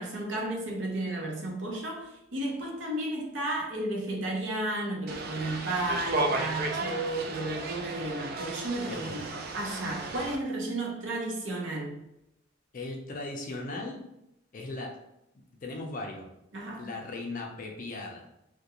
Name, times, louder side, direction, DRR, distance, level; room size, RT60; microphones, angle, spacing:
voice 1, 0.0-12.0 16.5-16.9, right 1 dB, 65° right, -1 dB, 0.7 m, -33 dB
sound 1, 5.1-10.4, right 2 dB, 50° right, 0.3 m, -34 dB
voice 2, 8.8-9.2 12.7-14.0 14.5-15.0 15.6-16.3 16.8-18.3, left 2 dB, 45° left, 1 dB, 0.4 m, -38 dB
2.4 x 2.2 x 2.9 m, 0.83 s
head